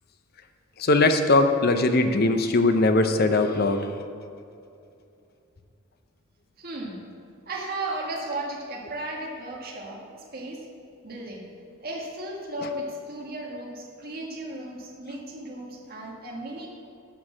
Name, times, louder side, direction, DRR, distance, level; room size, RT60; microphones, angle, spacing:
voice 1, 0.8-3.8, left 2 dB, 50° left, 7 dB, 0.6 m, -20 dB
voice 2, 6.6-7.0 7.4-10.0 10.3-10.6 11.0-11.4 11.8-16.7, right 1 dB, 45° right, -2 dB, 1.7 m, -35 dB
11.0 x 4.7 x 7.2 m, 2.5 s
head